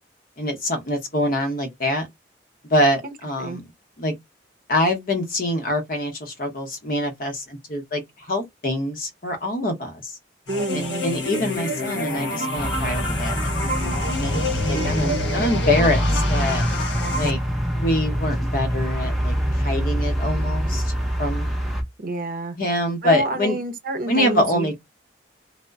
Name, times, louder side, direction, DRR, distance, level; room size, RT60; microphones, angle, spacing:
voice 1, 0.4-2.1 2.7-3.6 4.0-4.1 4.7-10.1 10.7-13.4 13.6-16.6 17.1-17.4 17.7-20.9 21.2-21.5 22.6-23.6 24.1-24.8, left 1 dB, 50° left, 0.8 m, -25 dB
sound 1, 10.5-17.3, left 1 dB, 80° left, 0.8 m, -27 dB
voice 2, 10.5-11.1 14.7-15.2 22.0-22.6 23.0-24.8, right 2 dB, 50° right, 0.6 m, -29 dB
sound 2, 12.6-21.8, equal, ahead, 0.6 m, -25 dB
2.1 x 2.0 x 3.4 m
head